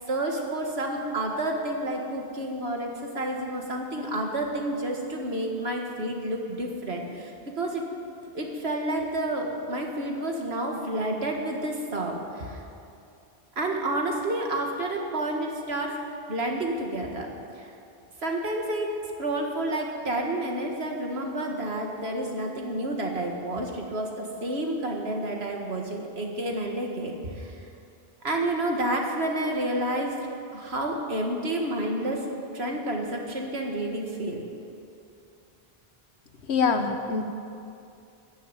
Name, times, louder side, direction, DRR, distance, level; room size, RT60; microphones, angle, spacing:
voice 1, 0.1-7.9 8.3-12.6 13.6-16.0 16.3-17.3 17.6-17.7 18.2-27.7 28.2-30.2 30.5-32.3 32.5-34.4, right 1 dB, 75° right, 1 dB, 2.1 m, -30 dB
voice 2, 36.5-37.2, left 5 dB, 90° left, 6 dB, 1.4 m, -24 dB
12.5 x 10.5 x 9.0 m, 2.6 s
omnidirectional pair, 1.1 m